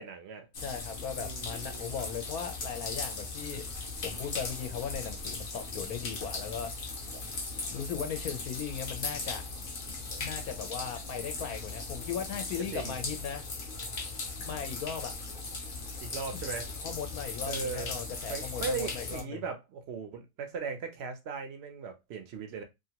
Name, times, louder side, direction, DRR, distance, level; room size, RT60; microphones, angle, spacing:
voice 1, 0.0-0.4 1.2-2.1 12.7-13.0 16.0-16.7 17.5-17.9 18.3-22.6, right 5 dB, 60° right, 0.7 m, -38 dB
sound 1, 0.5-19.2, left 3 dB, 50° left, 0.7 m, -38 dB
voice 2, 0.6-6.7 7.7-9.4 10.2-13.4 14.4-15.1 16.8-19.4, left 7 dB, 75° left, 1.1 m, -38 dB
2.9 x 2.4 x 2.8 m
omnidirectional pair, 1.7 m